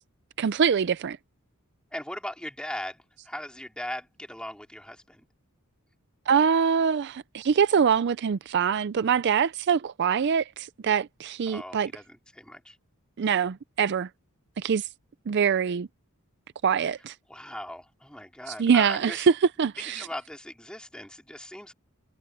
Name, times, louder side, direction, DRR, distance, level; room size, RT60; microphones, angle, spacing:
voice 1, 0.4-1.2 6.3-11.9 13.2-14.1 14.6-14.9 15.3-15.9 16.6-17.1 18.5-20.1, right 6 dB, 50° right, 0.4 m, -24 dB
voice 2, 1.9-5.3 11.5-12.0 12.3-12.8 17.3-19.2 19.9-21.7, left 1 dB, 5° left, 2.9 m, -39 dB
head